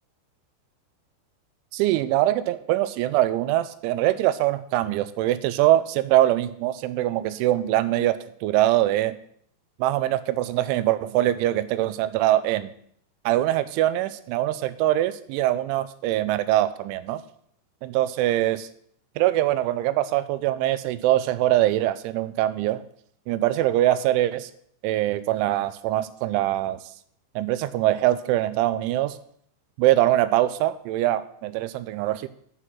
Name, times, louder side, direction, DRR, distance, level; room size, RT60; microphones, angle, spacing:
voice 1, 1.7-9.2 9.8-12.7 13.3-17.2 17.8-18.7 19.2-22.8 23.3-24.5 24.8-26.8 27.4-29.2 29.8-32.3, right 14 dB, 85° right, 12 dB, 3.0 m, -23 dB
8.2 x 5.7 x 7.6 m, 0.66 s
omnidirectional pair, 5.5 m